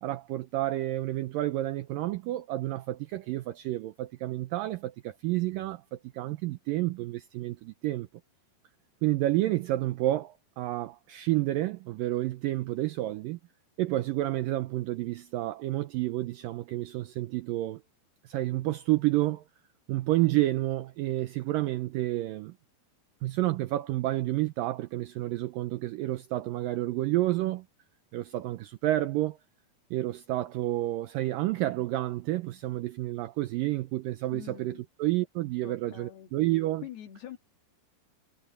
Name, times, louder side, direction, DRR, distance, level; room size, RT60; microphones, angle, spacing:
voice 1, 0.0-8.1 9.0-13.4 13.8-17.8 18.2-19.4 19.9-22.5 23.2-27.7 28.1-29.4 29.9-36.8, right 16 dB, 85° right, 2.0 m, -30 dB
voice 2, 34.3-34.9 35.6-36.3 36.8-37.4, left 11 dB, 70° left, 4.4 m, -44 dB
omnidirectional pair, 4.7 m